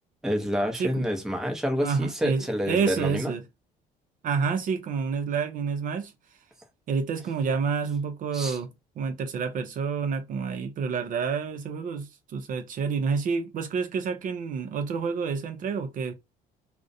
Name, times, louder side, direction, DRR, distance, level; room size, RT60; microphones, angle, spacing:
voice 1, 0.2-3.3 8.3-8.6, equal, 5° right, 0.6 m, -28 dB
voice 2, 0.7-1.1 1.8-3.4 4.2-6.1 6.9-8.7 9.0-16.1, right 5 dB, 50° right, 0.5 m, -28 dB
2.4 x 2.0 x 2.5 m
cardioid pair, 110°, 17 cm